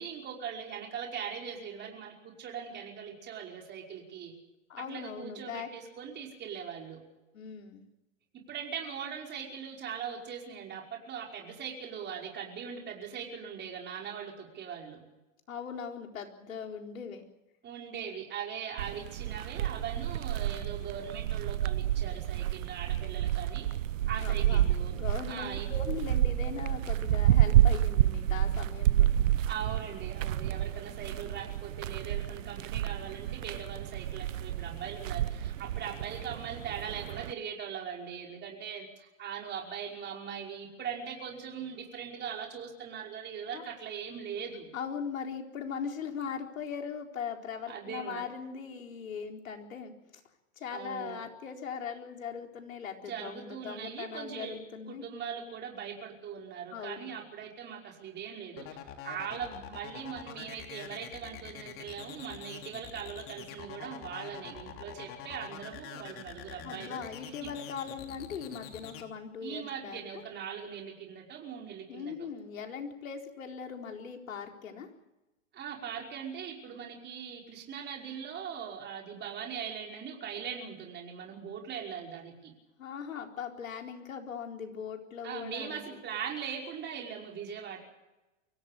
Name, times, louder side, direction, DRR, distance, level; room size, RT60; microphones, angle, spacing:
voice 1, 0.0-4.3 4.9-7.0 8.3-15.0 17.6-23.7 24.1-25.0 25.3-25.7 29.5-44.7 47.7-48.3 50.7-51.3 53.0-54.6 54.9-58.7 59.0-67.5 69.4-72.3 75.5-82.5 85.2-87.8, right 7 dB, 25° right, 0 dB, 5.5 m, -40 dB
voice 2, 4.7-5.7 7.3-7.8 15.5-17.3 24.2-24.7 24.9-29.1 43.5-43.6 44.7-49.9 50.6-55.1 56.7-57.1 66.6-70.2 71.9-74.9 82.8-86.0, left 7 dB, 85° left, 3 dB, 4.3 m, -40 dB
sound 1, 18.8-37.3, right 12 dB, 75° right, 1.0 m, -29 dB
sound 2, 58.6-69.0, left 10 dB, 35° left, 3.3 m, -45 dB
24.0 x 17.0 x 8.5 m, 1.0 s
hypercardioid pair, 125°, 39 cm